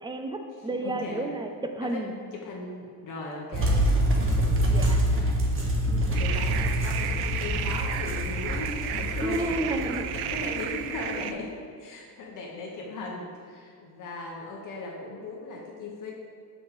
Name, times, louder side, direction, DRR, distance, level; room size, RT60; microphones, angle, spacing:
voice 1, 0.0-2.1 4.7-5.0 9.2-10.1, right 1 dB, 10° right, 5 dB, 0.6 m, -31 dB
voice 2, 0.8-1.3 1.8-2.1 2.3-3.8 6.1-16.1, left 2 dB, 50° left, -2 dB, 1.3 m, -38 dB
sound 1, 3.5-11.1, equal, 30° right, 1.3 m, -26 dB
sound 2, 6.1-11.3, right 10 dB, 75° right, 0.5 m, -33 dB
5.6 x 5.3 x 6.8 m, 2.4 s
cardioid pair, 140°, 39 cm